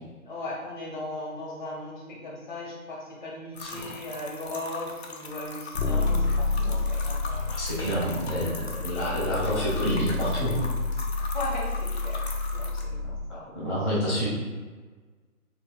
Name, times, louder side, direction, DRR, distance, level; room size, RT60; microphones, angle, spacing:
voice 1, 0.3-7.5 11.2-12.2 12.5-13.5, left 1 dB, 30° left, -4 dB, 1.0 m, -37 dB
sound 1, 3.5-12.8, left 3 dB, 45° left, 0.6 m, -41 dB
sound 2, 5.7-13.3, left 3 dB, 85° left, 0.6 m, -29 dB
voice 2, 7.5-10.6 13.5-14.3, equal, ahead, -17 dB, 0.6 m, -28 dB
3.4 x 2.7 x 4.6 m, 1.4 s
figure-of-eight pair, 135°, 44 cm